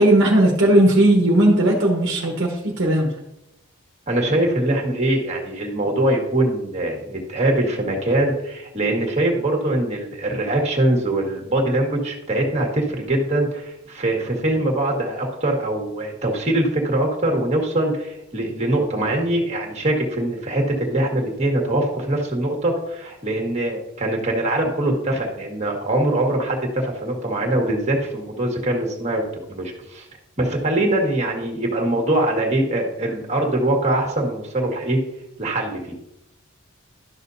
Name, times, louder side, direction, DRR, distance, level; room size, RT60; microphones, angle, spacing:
voice 1, 0.0-3.1, right 1 dB, 55° right, 0 dB, 1.2 m, -16 dB
voice 2, 4.1-29.2 29.5-30.1 30.4-35.0 35.4-35.8, right 1 dB, 30° right, 1 dB, 1.6 m, -22 dB
11.5 x 6.3 x 2.7 m, 0.83 s
head